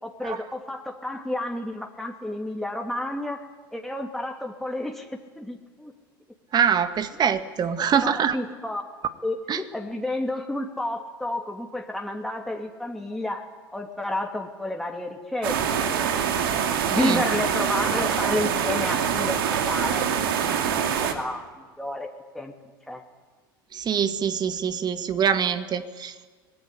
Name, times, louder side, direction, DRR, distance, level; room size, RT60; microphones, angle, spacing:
voice 1, 0.0-3.4 3.7-5.9 7.8-8.8 9.2-13.4 13.7-16.2 16.9-20.1 20.5-21.5 21.8-22.1 22.3-22.5 22.9-23.0, left 1 dB, ahead, 2 dB, 2.8 m, -31 dB
voice 2, 6.5-8.4 9.5-9.6 16.9-17.2 23.7-26.3, right 8 dB, 35° right, 11 dB, 2.0 m, -24 dB
sound 1, 15.4-21.1, right 8 dB, 75° right, 2.7 m, -25 dB
26.0 x 19.0 x 10.0 m, 1.4 s
hypercardioid pair, 85°, 12 cm